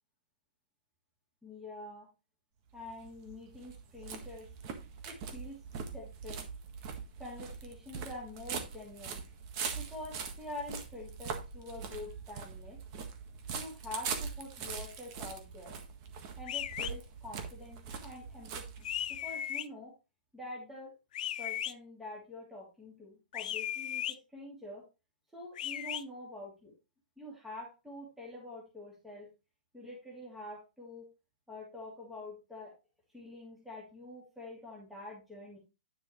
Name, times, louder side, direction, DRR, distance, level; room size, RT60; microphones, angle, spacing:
voice 1, 1.4-2.1 2.7-4.5 5.0-6.5 7.2-9.2 9.7-12.8 13.5-15.8 16.4-19.9 20.3-20.9 21.4-24.8 25.3-26.7 27.2-29.3 29.7-31.1 31.5-32.7 33.1-35.6, left 2 dB, ahead, -4 dB, 2.7 m, -46 dB
sound 1, 2.7-19.3, right 6 dB, 35° right, 1.6 m, -42 dB
sound 2, 16.5-16.9 18.8-19.7 21.1-21.7 23.3-24.2 25.6-26.0, left 11 dB, 55° left, 0.6 m, -36 dB
9.7 x 6.2 x 3.1 m, 0.28 s
hypercardioid pair, 160°, 5 cm